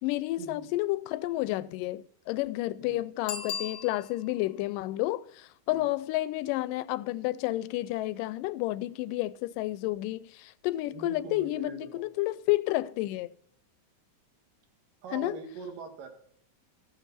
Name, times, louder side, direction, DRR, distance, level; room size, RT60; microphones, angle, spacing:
voice 1, 0.0-13.3 15.1-15.4, left 17 dB, 85° left, 2.2 m, -31 dB
Bicycle bell, 3.2-4.4 9.9-10.0, left 7 dB, 60° left, 1.5 m, -37 dB
voice 2, 10.9-12.0 15.0-16.1, right 5 dB, 85° right, 3.4 m, -42 dB
15.5 x 6.6 x 4.1 m
omnidirectional pair, 3.8 m